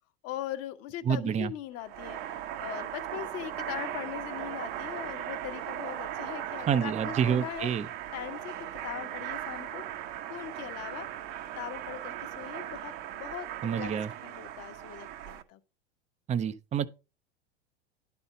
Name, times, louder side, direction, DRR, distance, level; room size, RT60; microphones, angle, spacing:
voice 1, 0.2-2.2 2.6-7.7 8.1-8.5 8.8-9.8 10.3-11.1 11.6-13.9 14.2-15.6, left 13 dB, 45° left, 1.1 m, -40 dB
voice 2, 1.0-1.5 6.7-7.9 13.6-14.1 16.3-16.9, right 8 dB, 20° right, 0.6 m, -28 dB
sound 1, 1.8-15.4, right 11 dB, 55° right, 1.0 m, -38 dB
11.0 x 4.4 x 5.2 m
hypercardioid pair, 95°, 33 cm